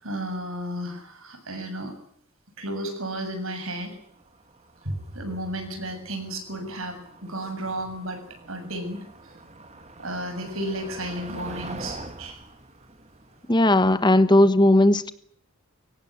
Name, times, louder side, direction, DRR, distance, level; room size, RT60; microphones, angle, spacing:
voice 1, 0.0-2.0 2.6-4.0 4.8-8.2 8.5-9.4 10.0-12.4, right 1 dB, 70° right, 7 dB, 7.2 m, -33 dB
Motor vehicle (road), 3.9-14.2, right 2 dB, 30° right, 2.9 m, -44 dB
voice 2, 13.5-15.1, left 1 dB, 20° left, 13 dB, 1.2 m, -17 dB
24.0 x 18.0 x 9.8 m, 0.66 s
head